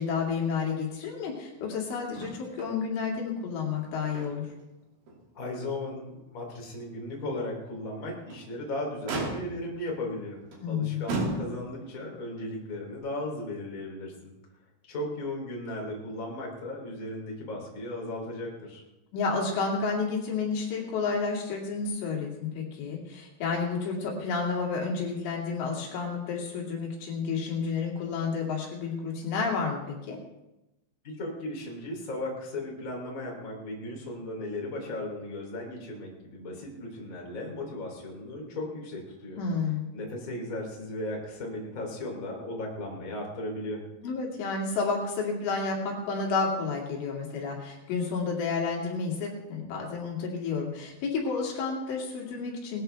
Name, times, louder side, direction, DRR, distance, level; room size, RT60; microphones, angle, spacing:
voice 1, 0.0-4.5 10.6-11.0 19.1-30.2 39.4-39.9 44.0-52.8, left 4 dB, 75° left, -1 dB, 4.9 m, -30 dB
Motor vehicle (road), 2.1-2.8 3.1-3.2 3.7-4.6 5.1-5.2 5.7-5.8 8.0-8.5 9.1-9.8 10.5-10.7 11.1-11.9 12.9-13.0, right 2 dB, 50° right, 3.8 m, -35 dB
voice 2, 5.3-10.4 10.7-14.3 14.9-18.8 31.2-39.4 39.9-43.8, left 1 dB, 20° left, -1 dB, 2.7 m, -36 dB
19.5 x 13.5 x 3.4 m, 0.95 s
omnidirectional pair, 5.6 m